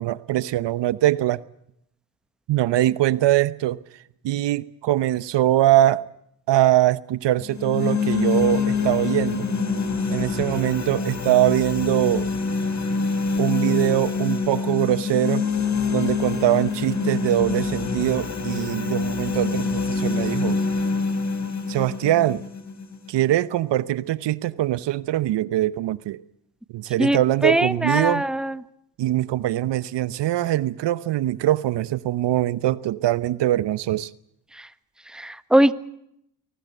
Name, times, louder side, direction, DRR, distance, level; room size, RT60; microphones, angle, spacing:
voice 1, 0.0-1.4 2.5-3.8 4.2-6.0 6.5-9.5 10.1-12.3 13.4-15.4 15.9-20.6 21.7-22.4 23.1-26.2 26.7-28.2 29.0-34.1, right 14 dB, 65° right, 0.9 m, -22 dB
sound 1, 7.4-23.4, left 4 dB, 40° left, 3.8 m, -25 dB
voice 2, 27.0-28.5 35.1-35.7, right 1 dB, ahead, 1.3 m, -21 dB
23.0 x 19.0 x 7.9 m
supercardioid pair, 60°, 45 cm